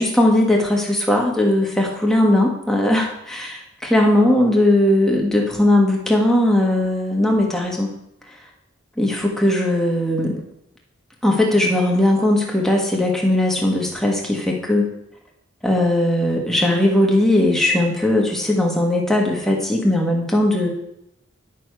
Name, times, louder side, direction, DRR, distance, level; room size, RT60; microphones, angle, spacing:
voice 1, 0.0-8.0 9.0-10.4 11.2-14.9 15.6-20.7, left 1 dB, ahead, -1 dB, 1.4 m, -18 dB
9.9 x 6.1 x 4.7 m, 0.81 s
head